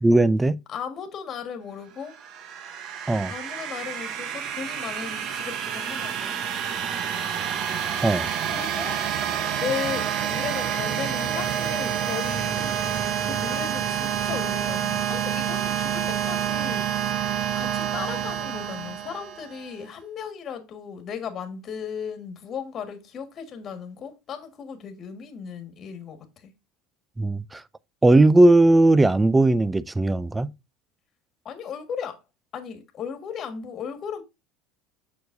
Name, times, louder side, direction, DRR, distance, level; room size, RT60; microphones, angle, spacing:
voice 1, 0.0-0.6 3.1-3.3 8.0-8.3 27.2-27.6 28.0-30.5, right 2 dB, 10° right, 0.3 m, -18 dB
voice 2, 0.7-2.2 3.3-6.4 8.5-9.0 9.6-12.9 13.2-16.9 17.5-26.5 31.4-32.2 32.5-34.2, left 7 dB, 35° left, 1.6 m, -36 dB
sound 1, 2.1-19.7, right 9 dB, 45° right, 0.9 m, -28 dB
7.0 x 6.4 x 2.6 m
cardioid pair, 140°, 0 cm